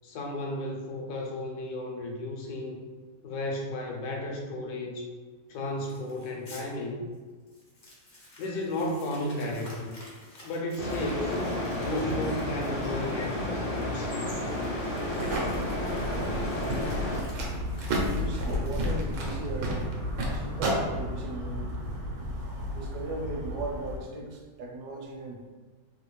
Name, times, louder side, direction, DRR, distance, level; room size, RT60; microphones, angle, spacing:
voice 1, 0.0-2.8 3.2-5.1 5.5-7.1 8.4-9.9 10.4-11.4 11.8-14.1, left 1 dB, 75° left, 1 dB, 1.1 m, -34 dB
Crumpling crinkling, 5.8-6.6 7.1-7.2 7.5-19.2, left 1 dB, 45° left, 0.7 m, -52 dB
sound 1, 10.8-17.2, left 1 dB, 60° left, 1.3 m, -31 dB
sound 2, 15.2-24.0, equal, 90° right, 1.4 m, -32 dB
voice 2, 15.8-16.5 18.0-19.9 20.3-21.6 22.7-25.6, right 2 dB, 75° right, 0 dB, 1.1 m, -37 dB
3.3 x 2.6 x 3.0 m, 1.4 s
omnidirectional pair, 1.8 m